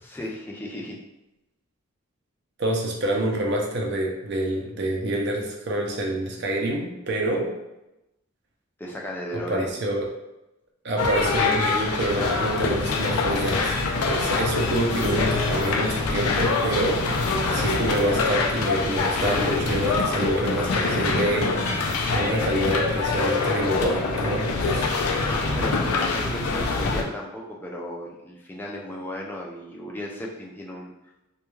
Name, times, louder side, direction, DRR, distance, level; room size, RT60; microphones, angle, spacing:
voice 1, 0.0-1.0 8.8-9.9 24.9-30.9, equal, 10° left, -2 dB, 0.3 m, -35 dB
voice 2, 2.6-7.5 9.3-10.1 10.8-13.7 14.0-21.8 22.1-24.9, right 1 dB, 50° right, 0 dB, 0.5 m, -27 dB
sound 1, 11.0-27.0, left 3 dB, 90° left, 0.4 m, -24 dB
2.2 x 2.2 x 3.0 m, 0.95 s
head